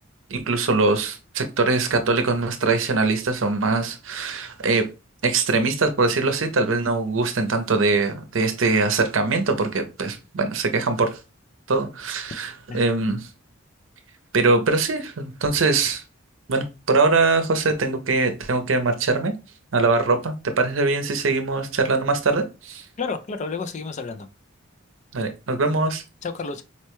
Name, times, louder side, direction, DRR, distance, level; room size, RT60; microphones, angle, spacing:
voice 1, 0.3-4.9 5.2-11.2 11.7-13.3 14.3-16.0 16.5-19.3 19.7-22.8 25.1-26.0, right 3 dB, 70° right, 0.6 m, -22 dB
voice 2, 23.0-24.3 26.2-26.6, left 4 dB, 35° left, 0.3 m, -30 dB
4.2 x 2.2 x 2.9 m
head